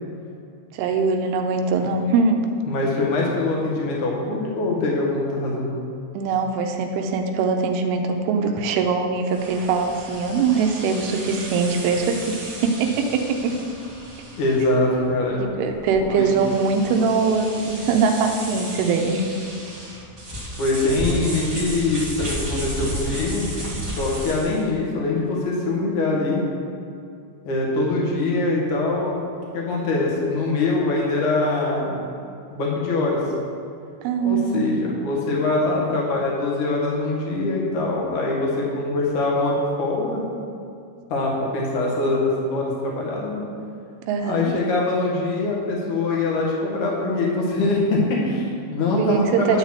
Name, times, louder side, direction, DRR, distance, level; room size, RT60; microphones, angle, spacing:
voice 1, 0.8-2.4 6.1-13.6 15.3-19.3 34.0-34.8 44.1-44.5 49.0-49.6, right 4 dB, 85° right, 4 dB, 3.2 m, -22 dB
voice 2, 2.7-5.8 14.4-15.4 16.0-16.3 20.6-23.5 24.0-26.4 27.4-29.2 29.5-32.0 32.5-33.2 34.2-40.2 41.1-43.4 44.2-49.6, left 2 dB, 55° left, -3 dB, 2.3 m, -23 dB
sound 1, 9.3-24.7, right 1 dB, 55° right, 0.8 m, -34 dB
12.5 x 4.1 x 7.5 m, 2.5 s
omnidirectional pair, 5.7 m